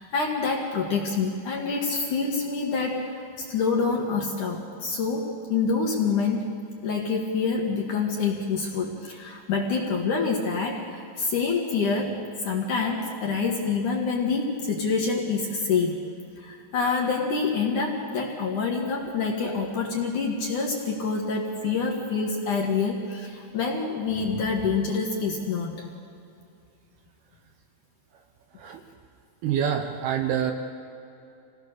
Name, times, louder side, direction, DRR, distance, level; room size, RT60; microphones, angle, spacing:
voice 1, 0.0-6.5 6.8-16.0 16.4-25.9, left 4 dB, 55° left, 0 dB, 2.6 m, -27 dB
voice 2, 29.4-30.5, right 9 dB, 70° right, 5 dB, 2.8 m, -26 dB
27.0 x 18.5 x 6.6 m, 2.6 s
omnidirectional pair, 5.3 m